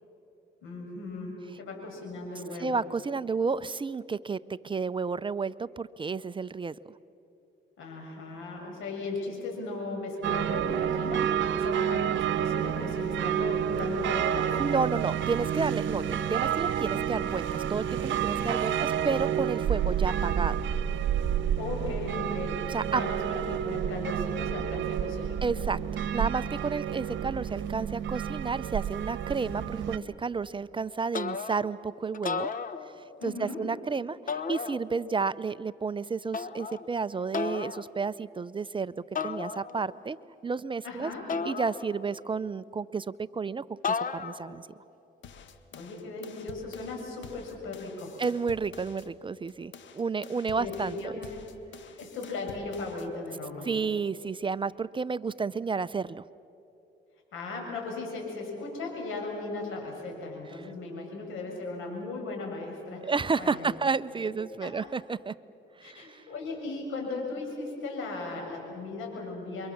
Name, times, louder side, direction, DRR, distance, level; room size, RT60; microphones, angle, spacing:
voice 1, 0.6-2.7 7.8-14.6 18.4-19.1 21.6-25.3 33.2-33.7 40.8-41.3 45.7-48.2 50.5-51.4 52.0-53.7 57.3-63.7 64.2-64.3 64.6-64.7 65.8-69.7, left 3 dB, 85° left, 1 dB, 6.5 m, -37 dB
voice 2, 2.6-6.8 14.6-20.6 22.7-23.0 25.4-32.5 32.8-38.9 39.2-40.2 40.4-41.1 41.4-44.7 48.2-51.1 53.7-56.2 63.0-65.3 65.8-66.3, right 4 dB, 25° right, 16 dB, 0.5 m, -31 dB
sound 1, 10.2-30.0, right 9 dB, 70° right, 1.1 m, -29 dB
sound 2, 31.1-31.8 32.1-33.3 34.3-35.2 36.3-36.9 37.3-37.9 39.2-40.0 41.3-42.3 43.8-44.6, left 5 dB, 45° left, 1.1 m, -34 dB
sound 3, 45.2-49.1 49.5-53.1, left 6 dB, 70° left, 1.6 m, -49 dB
27.5 x 24.0 x 7.2 m, 2.9 s
cardioid pair, 90°, 20 cm